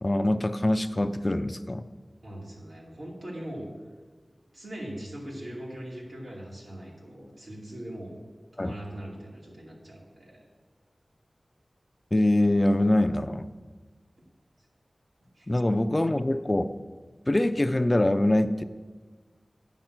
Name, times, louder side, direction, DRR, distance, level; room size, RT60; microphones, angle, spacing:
voice 1, 0.0-1.9 8.6-8.7 12.1-13.5 15.5-16.7 17.3-18.6, left 1 dB, 30° left, 10 dB, 0.4 m, -24 dB
voice 2, 2.2-3.7 4.5-8.1 8.6-10.4 15.4-15.5 15.8-15.9, right 1 dB, 85° right, -4 dB, 2.5 m, -40 dB
8.9 x 6.5 x 5.9 m, 1.4 s
wide cardioid pair, 75°, 0 cm